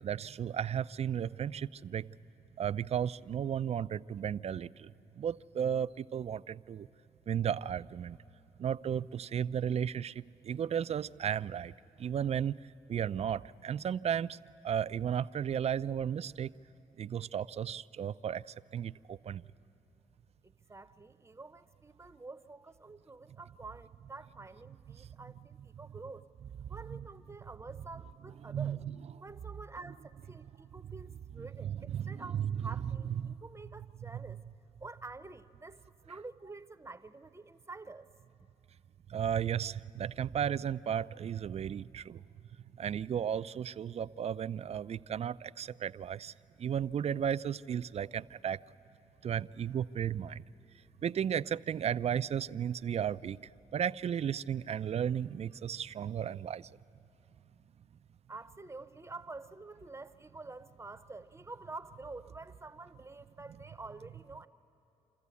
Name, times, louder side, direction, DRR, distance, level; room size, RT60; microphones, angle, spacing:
voice 1, 0.0-2.1 2.6-4.9 5.2-6.9 7.3-8.2 8.6-11.7 12.0-12.5 12.9-14.4 14.6-16.5 17.0-18.4 18.7-19.4 24.9-25.0 26.6-27.1 28.4-29.0 31.4-32.6 33.2-33.4 39.1-42.2 42.8-46.3 46.6-48.6 49.2-50.4 51.0-53.4 53.7-56.7, right 8 dB, 50° right, 17 dB, 0.4 m, -34 dB
voice 2, 20.4-26.3 26.7-28.8 29.2-34.4 34.8-38.1 58.3-64.5, right 3 dB, 20° right, 13 dB, 0.7 m, -48 dB
26.5 x 14.0 x 8.4 m, 3.0 s
cardioid pair, 60°, 14 cm